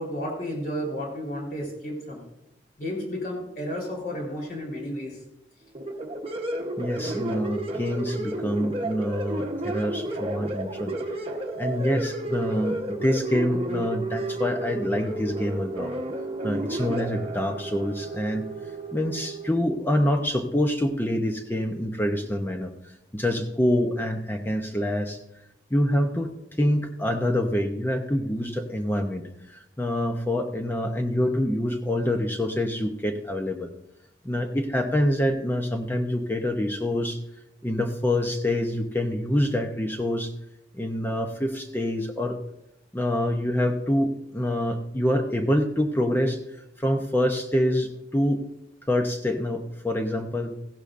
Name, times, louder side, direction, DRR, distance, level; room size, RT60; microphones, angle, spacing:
voice 1, 0.0-2.2 2.8-5.2, equal, 50° left, -2 dB, 3.7 m, -32 dB
sound 1, 5.8-19.5, right 1 dB, 30° right, 0.9 m, -32 dB
voice 2, 6.8-10.9 11.6-15.9 16.4-18.4 18.9-22.7 23.1-25.2 25.7-26.3 26.6-33.7 34.2-37.2 37.6-40.3 40.7-42.4 42.9-46.4 46.8-48.4 48.9-50.5, left 1 dB, 10° left, 4 dB, 0.6 m, -26 dB
15.5 x 12.0 x 2.5 m, 0.87 s
head